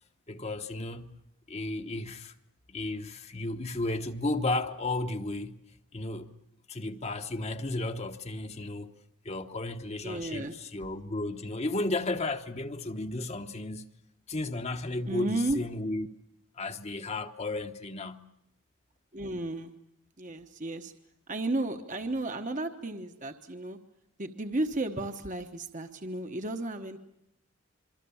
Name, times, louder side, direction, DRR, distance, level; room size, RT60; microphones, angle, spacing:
voice 1, 0.3-1.2 1.5-2.3 2.7-5.6 5.9-6.4 6.7-8.9 9.2-13.9 14.3-16.1 16.6-18.3, left 2 dB, 30° left, 1.1 m, -33 dB
voice 2, 10.0-10.5 15.1-15.6 19.1-19.7 20.2-20.9 21.3-23.8 24.2-27.0, right 2 dB, 35° right, 1.2 m, -33 dB
27.0 x 24.0 x 7.1 m
head